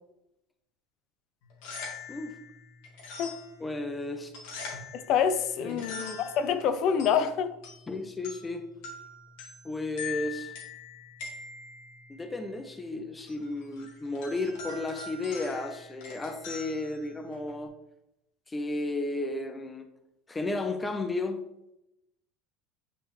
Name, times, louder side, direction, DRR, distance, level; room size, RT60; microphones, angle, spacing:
sound 1, 1.4-17.7, left 4 dB, 70° left, 1.9 m, -44 dB
voice 1, 3.6-4.3 5.6-5.9 7.9-8.6 9.6-10.5 12.1-17.7 18.5-19.9 20.3-21.4, left 2 dB, 15° left, 0.6 m, -33 dB
voice 2, 4.9-7.5, left 7 dB, 55° left, 0.6 m, -27 dB
9.1 x 3.4 x 3.2 m
supercardioid pair, 115°, 0 cm